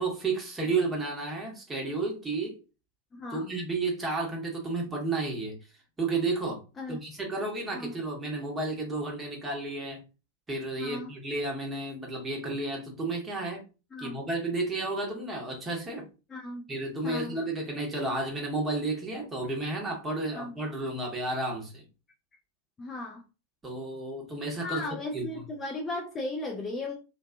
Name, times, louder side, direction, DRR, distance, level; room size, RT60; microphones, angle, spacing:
voice 1, 0.0-2.6 3.3-5.6 6.0-6.6 6.9-10.0 10.5-13.6 14.0-16.1 16.7-21.8 23.6-24.8 25.1-25.4, right 2 dB, 15° right, 0.9 m, -32 dB
voice 2, 3.1-3.5 6.8-7.0 7.7-7.9 10.8-11.1 13.9-14.2 16.3-16.7 17.0-17.4 20.3-20.5 22.8-23.2 24.6-26.9, left 2 dB, 20° left, 0.4 m, -36 dB
2.5 x 2.2 x 2.4 m
figure-of-eight pair, 90°, 0 cm